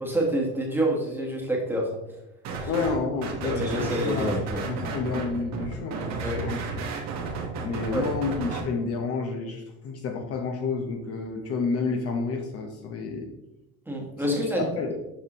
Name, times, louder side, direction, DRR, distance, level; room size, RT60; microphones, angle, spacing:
voice 1, 0.0-1.9 2.6-2.7 3.4-4.6 6.2-6.4 7.9-8.0 13.9-14.7, right 1 dB, 5° right, -1 dB, 1.4 m, -27 dB
sound 1, 2.4-2.9 3.2-8.6, right 4 dB, 55° right, 1.4 m, -32 dB
voice 2, 2.7-4.4 4.6-6.0 6.3-6.6 7.6-13.3 14.2-15.0, left 4 dB, 45° left, 3 dB, 1.0 m, -30 dB
7.2 x 5.3 x 3.0 m, 0.90 s
cardioid pair, 145°, 32 cm